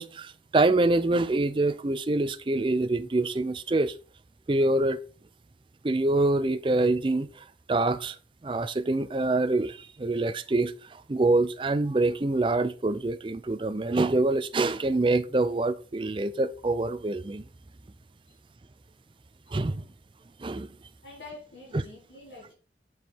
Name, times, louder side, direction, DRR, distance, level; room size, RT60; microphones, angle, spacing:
voice 1, 0.0-3.9 4.5-5.0 5.8-7.3 7.7-8.2 8.4-10.7 11.1-17.4 19.5-19.8 20.4-20.7, right 2 dB, 30° right, 0.4 m, -25 dB
voice 2, 21.0-22.5, left 2 dB, 85° left, 3.6 m, -46 dB
7.1 x 4.7 x 4.5 m
head